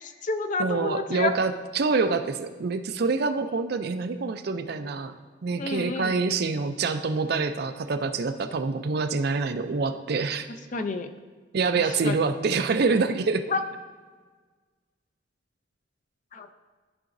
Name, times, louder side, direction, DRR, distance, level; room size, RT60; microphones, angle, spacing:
voice 1, 0.0-1.3 5.6-6.2 10.7-11.1 12.0-12.2 13.5-13.6 16.3-16.5, left 3 dB, 40° left, 8 dB, 0.5 m, -29 dB
voice 2, 0.6-5.1 5.4-10.5 11.5-13.4, right 4 dB, 55° right, 9 dB, 0.4 m, -26 dB
13.5 x 4.9 x 2.6 m, 1.5 s
head